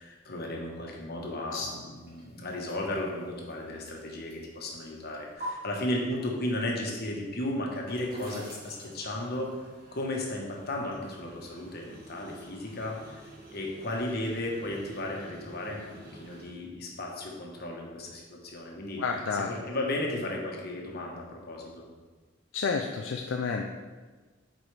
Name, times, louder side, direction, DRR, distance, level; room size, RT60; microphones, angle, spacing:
voice 1, 0.0-9.5 9.9-13.3 13.5-19.0 19.5-21.9, left 1 dB, 55° left, -1 dB, 1.2 m, -34 dB
sound 1, 1.9-5.5 7.0-16.5, right 1 dB, 50° right, 1.8 m, -50 dB
voice 2, 19.0-19.5 22.5-23.7, left 5 dB, 75° left, 3 dB, 0.4 m, -30 dB
7.9 x 4.5 x 3.3 m, 1.3 s
head